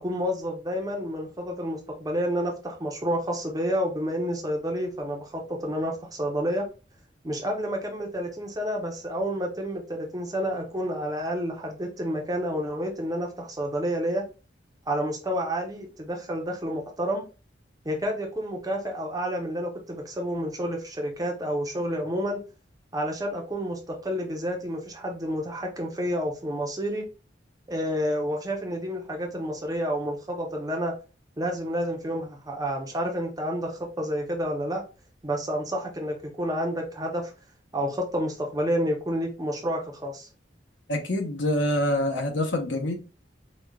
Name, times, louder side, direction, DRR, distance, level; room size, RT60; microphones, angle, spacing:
voice 1, 0.0-6.6 7.2-14.2 14.9-17.2 17.8-22.4 22.9-27.0 27.7-30.9 31.4-34.8 35.2-37.3 37.7-40.3, equal, 20° right, 0.8 m, -29 dB
voice 2, 40.9-42.9, left 1 dB, 85° left, 0.9 m, -26 dB
4.9 x 2.4 x 2.3 m
head